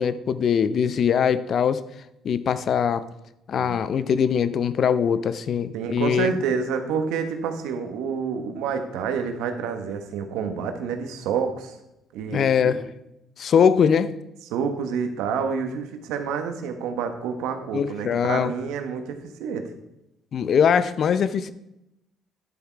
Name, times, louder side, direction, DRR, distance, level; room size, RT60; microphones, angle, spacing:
voice 1, 0.0-1.8 2.2-3.1 3.5-6.3 12.3-12.8 13.4-14.1 17.7-18.5 20.3-21.5, left 7 dB, 55° left, 14 dB, 0.6 m, -21 dB
voice 2, 5.7-11.8 12.1-12.8 14.5-19.7, right 6 dB, 85° right, 6 dB, 1.4 m, -28 dB
11.0 x 7.3 x 4.6 m, 0.87 s
cardioid pair, 85°, 0 cm